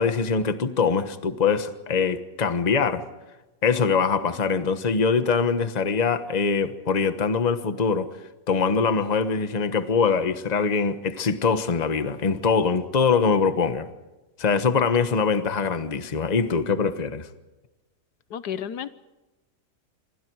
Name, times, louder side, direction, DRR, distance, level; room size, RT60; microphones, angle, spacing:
voice 1, 0.0-3.1 3.6-8.1 8.5-13.9 14.4-17.3, left 5 dB, 30° left, 1.2 m, -23 dB
voice 2, 18.3-18.9, left 9 dB, 80° left, 1.5 m, -31 dB
27.5 x 23.5 x 4.7 m
omnidirectional pair, 1.7 m